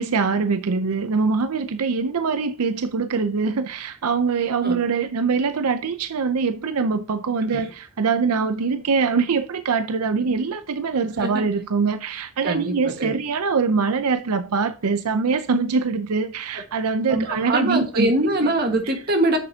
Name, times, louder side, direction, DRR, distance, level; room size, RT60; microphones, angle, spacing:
voice 1, 0.0-18.1, right 5 dB, 85° right, 0.6 m, -23 dB
voice 2, 12.4-13.1 17.1-19.4, right 1 dB, 45° right, 1.6 m, -23 dB
9.9 x 6.6 x 2.8 m
head